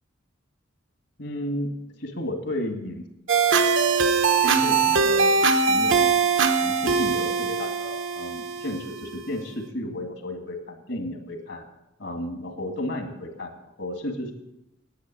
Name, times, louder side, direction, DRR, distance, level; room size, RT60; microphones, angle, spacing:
voice 1, 1.2-1.7 2.0-3.0 4.4-5.3 5.7-6.1 6.6-11.6 12.0-14.3, left 1 dB, 70° left, 4 dB, 2.2 m, -33 dB
sound 1, 3.3-9.3, right 5 dB, 90° right, 1.1 m, -22 dB
10.5 x 9.1 x 7.6 m, 0.88 s
head